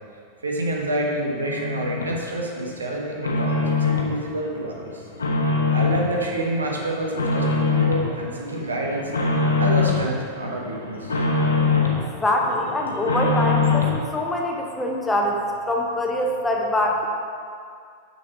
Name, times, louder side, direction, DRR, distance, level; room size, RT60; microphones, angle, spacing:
voice 1, 0.4-5.0 5.7-9.1 9.6-11.2, right 1 dB, 75° right, -1 dB, 1.1 m, -28 dB
sound 1, 1.3-2.1 2.6-4.1 4.5-6.1 6.5-8.1 8.5-10.1 10.4-12.0 12.4-14.0, left 4 dB, 70° left, 0.9 m, -23 dB
voice 2, 12.1-17.1, left 1 dB, 10° left, 0 dB, 0.9 m, -24 dB
6.8 x 6.2 x 4.5 m, 2.3 s
figure-of-eight pair, 90°, 0 cm